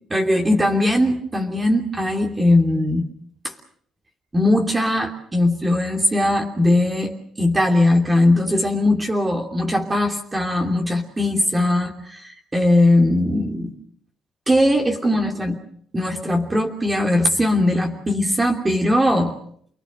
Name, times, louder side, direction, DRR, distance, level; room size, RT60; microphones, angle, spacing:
voice 1, 0.1-3.1 3.4-3.5 4.3-13.7 14.5-15.6 15.9-19.4, left 1 dB, 20° right, 2 dB, 3.1 m, -20 dB
29.5 x 21.0 x 6.5 m, 0.65 s
cardioid pair, 90°, 0 cm